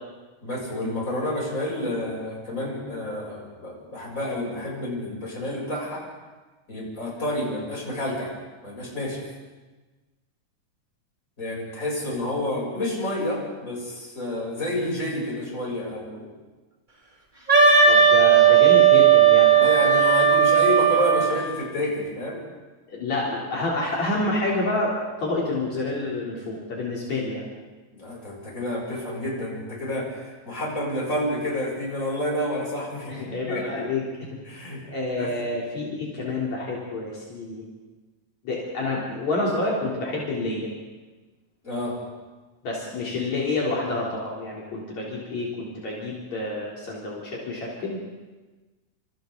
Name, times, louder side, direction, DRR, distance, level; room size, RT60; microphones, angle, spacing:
voice 1, 0.4-6.1 6.7-8.3 8.6-9.2 11.4-16.3 18.0-18.1 19.6-22.4 27.9-33.9 34.4-34.8 35.2-35.3 41.6-42.0, left 1 dB, 25° left, -3 dB, 8.1 m, -29 dB
Wind instrument woodwind instrument, 17.5-21.3, right 7 dB, 15° right, 3.8 m, -16 dB
voice 2, 17.9-19.9 22.9-27.4 33.1-34.0 34.9-37.6 38.4-40.7 42.6-48.0, left 2 dB, 60° left, -5 dB, 4.8 m, -28 dB
29.5 x 28.5 x 4.0 m, 1.3 s
omnidirectional pair, 3.5 m